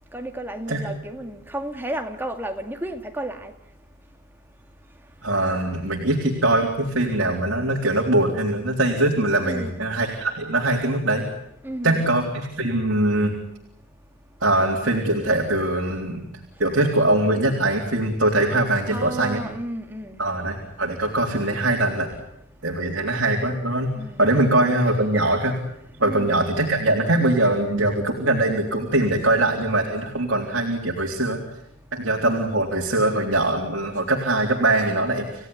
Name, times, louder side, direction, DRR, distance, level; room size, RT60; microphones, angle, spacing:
voice 1, 0.1-3.5 9.4-9.8 11.6-12.0 18.9-20.2 24.0-24.3 26.0-26.4, right 1 dB, 10° right, 2.1 m, -32 dB
voice 2, 5.2-11.2 11.8-13.3 14.4-16.2 16.6-19.4 20.2-22.1 22.6-23.9 24.2-25.6 26.0-31.4 31.9-35.5, right 2 dB, 55° right, 3.9 m, -22 dB
29.5 x 17.0 x 9.5 m
head